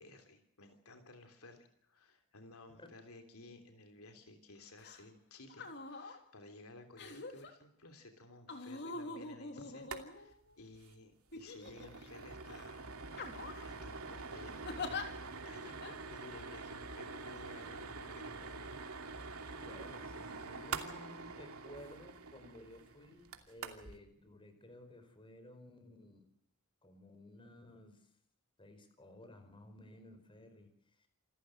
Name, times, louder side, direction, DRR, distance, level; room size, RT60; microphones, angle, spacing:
voice 1, 0.0-13.3 13.6-18.8, left 2 dB, 70° left, 7 dB, 3.3 m, -56 dB
sound 1, 4.8-5.0 5.5-6.2 7.0-7.5 8.5-10.5 11.3-12.1 12.5-12.7 13.1-13.7 14.6-15.0 15.8-15.9, left 3 dB, 50° left, 3.5 m, -44 dB
sound 2, 9.8-10.0 10.3-10.4 10.7-10.9 11.3-24.0, right 4 dB, 70° right, 2.7 m, -46 dB
voice 2, 19.5-26.3 26.8-28.1 28.6-31.1, left 1 dB, 25° left, 8 dB, 4.7 m, -55 dB
27.5 x 14.5 x 7.7 m, 0.70 s
head